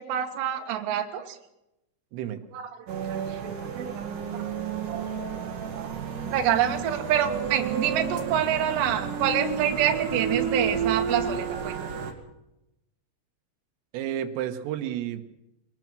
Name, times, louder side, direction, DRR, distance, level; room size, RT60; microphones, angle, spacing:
voice 1, 0.0-1.4 2.5-4.1 4.4-4.5 4.9-5.1 5.7-5.9 6.3-11.8, right 10 dB, 65° right, 4 dB, 3.7 m, -27 dB
sound 1, 2.9-12.1, right 6 dB, 50° right, 3.5 m, -31 dB
voice 2, 13.9-15.2, right 11 dB, 90° right, 7 dB, 3.8 m, -31 dB
24.5 x 19.5 x 6.2 m, 0.88 s
omnidirectional pair, 5.7 m